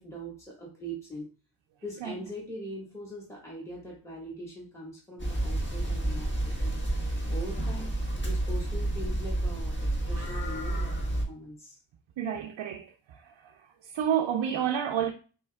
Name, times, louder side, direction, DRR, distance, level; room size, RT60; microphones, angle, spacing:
voice 1, 0.0-1.3 1.8-6.9 7.3-8.0 8.2-11.8, equal, 5° left, 1.6 m, -42 dB
sound 1, 5.2-11.2, right 1 dB, 25° left, 1.5 m, -30 dB
voice 2, 12.2-13.5 13.8-15.1, right 9 dB, 65° right, 0.5 m, -30 dB
5.3 x 2.9 x 2.3 m
cardioid pair, 60°, 48 cm